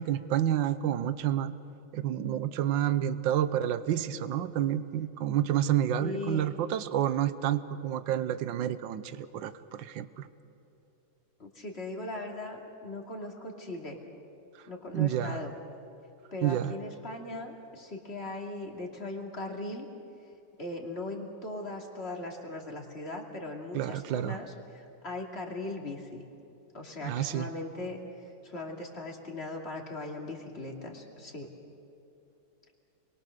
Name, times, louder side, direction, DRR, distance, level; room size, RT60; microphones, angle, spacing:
voice 1, 0.0-1.5 1.9-10.3 14.9-15.4 16.4-16.7 23.7-24.4 27.0-27.5, right 11 dB, 70° right, 13 dB, 1.5 m, -29 dB
voice 2, 6.0-6.5 11.4-14.0 14.7-15.5 16.3-19.9 20.6-26.2 26.7-31.5, left 2 dB, 30° left, 1 dB, 2.7 m, -39 dB
29.0 x 22.5 x 6.6 m, 2.8 s
omnidirectional pair, 2.2 m